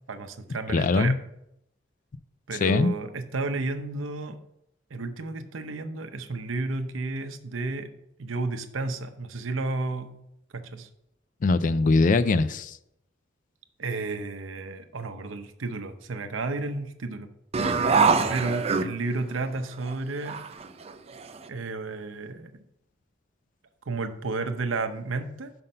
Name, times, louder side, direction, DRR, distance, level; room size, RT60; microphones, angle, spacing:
voice 1, 0.1-1.2 2.5-4.4 4.9-7.9 8.2-10.1 10.5-10.9 13.8-17.3 18.3-20.4 21.5-22.5 23.9-25.5, right 3 dB, 80° right, 0.7 m, -32 dB
voice 2, 0.7-1.1 2.6-2.9 11.4-12.8, left 3 dB, 45° left, 0.4 m, -21 dB
sound 1, 17.5-19.4 19.9-20.0 20.2-21.5, right 5 dB, 30° right, 0.5 m, -24 dB
5.8 x 5.3 x 5.4 m
head